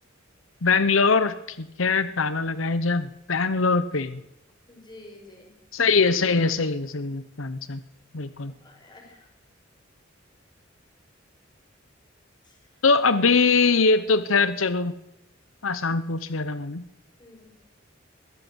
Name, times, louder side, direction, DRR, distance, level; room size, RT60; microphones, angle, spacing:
voice 1, 0.6-4.2 5.7-7.8 8.1-8.5 12.8-15.0 15.6-16.8, left 4 dB, 90° left, 13 dB, 1.0 m, -22 dB
voice 2, 4.7-5.5 8.4-9.3 12.4-12.8 17.2-17.5, left 2 dB, 25° left, 2 dB, 6.0 m, -50 dB
22.0 x 15.5 x 8.0 m, 0.87 s
head